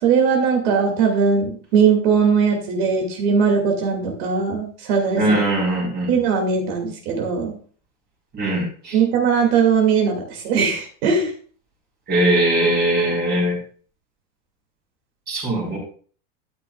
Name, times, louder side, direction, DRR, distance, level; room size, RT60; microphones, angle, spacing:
voice 1, 0.0-5.2 6.1-7.6 8.9-11.3, right 6 dB, 50° right, 1 dB, 2.6 m, -19 dB
voice 2, 5.2-6.1 8.3-9.0 12.1-13.6 15.3-15.8, right 1 dB, 25° right, -4 dB, 4.3 m, -20 dB
12.5 x 9.4 x 2.4 m, 0.43 s
supercardioid pair, 165°, 39 cm